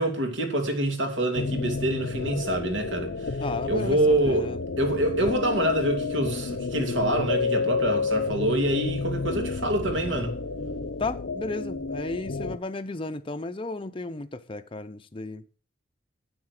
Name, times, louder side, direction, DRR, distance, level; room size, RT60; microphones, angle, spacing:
voice 1, 0.0-3.3 3.6-4.5 4.8-10.4, right 1 dB, 75° right, 2.7 m, -26 dB
sound 1, 1.3-12.6, left 4 dB, 65° left, 0.7 m, -30 dB
voice 2, 3.4-4.6 11.0-15.4, left 3 dB, 25° left, 0.6 m, -34 dB
9.6 x 7.9 x 6.5 m
head